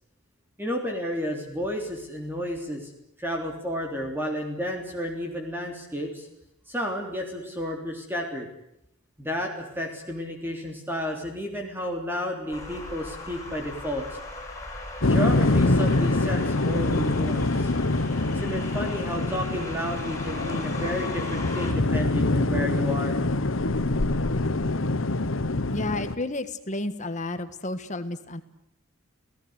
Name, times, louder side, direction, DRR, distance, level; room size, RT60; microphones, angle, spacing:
voice 1, 0.6-2.9 3.2-6.3 6.7-8.5 9.2-14.2 15.0-17.7 18.3-23.2, equal, 10° right, 1 dB, 3.5 m, -31 dB
sound 1, 12.5-21.7, left 2 dB, 15° left, 6.6 m, -39 dB
sound 2, 15.0-26.2, left 2 dB, 75° left, 1.1 m, -25 dB
voice 2, 25.7-28.4, left 2 dB, 35° left, 10 dB, 1.6 m, -31 dB
29.5 x 17.5 x 8.2 m, 0.83 s
head